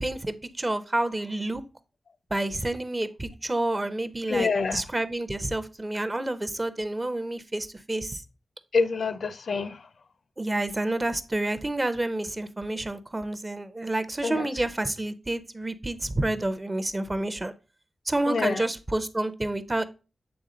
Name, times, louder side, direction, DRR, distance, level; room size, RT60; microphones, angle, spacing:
voice 1, 0.0-1.6 2.3-8.2 10.4-17.5 18.1-19.8, right 1 dB, 20° right, 0.5 m, -29 dB
voice 2, 4.3-4.8 8.7-9.8 14.2-14.5 18.3-18.6, left 4 dB, 70° left, 0.5 m, -26 dB
7.8 x 3.6 x 3.8 m
wide cardioid pair, 110°, 0 cm